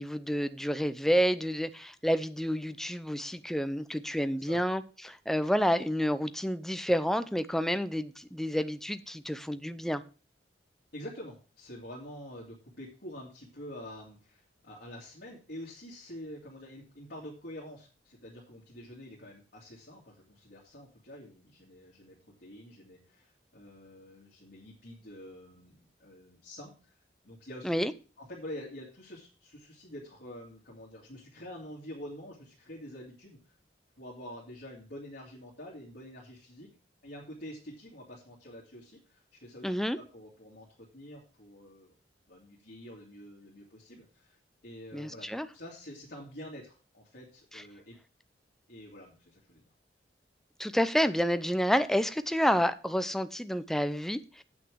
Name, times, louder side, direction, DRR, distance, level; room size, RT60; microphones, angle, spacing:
voice 1, 0.0-10.0 27.6-27.9 39.6-40.0 44.9-45.5 50.6-54.4, equal, ahead, 0.5 m, -29 dB
voice 2, 10.9-27.0 27.2-27.8 28.2-33.5 34.0-36.7 37.0-41.9 42.3-44.4 44.6-48.0 48.7-49.6, left 1 dB, 60° left, 2.3 m, -47 dB
8.1 x 6.2 x 6.2 m
head